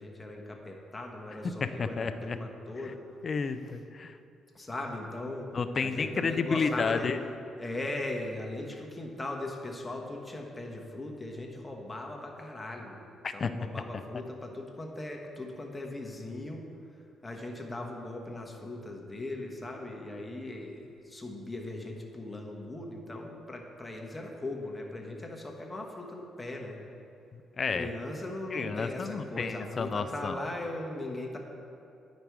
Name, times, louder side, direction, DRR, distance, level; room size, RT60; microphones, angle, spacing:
voice 1, 0.0-3.0 4.5-5.5 5.8-7.1 7.6-16.6 17.2-26.8 27.7-31.4, left 2 dB, 15° left, 1 dB, 1.1 m, -39 dB
voice 2, 1.4-2.4 3.2-4.2 5.5-7.3 13.2-13.5 27.3-27.9 28.5-30.4, left 5 dB, 40° left, 10 dB, 0.4 m, -31 dB
9.8 x 5.2 x 4.7 m, 2.6 s
cardioid pair, 90°, 0 cm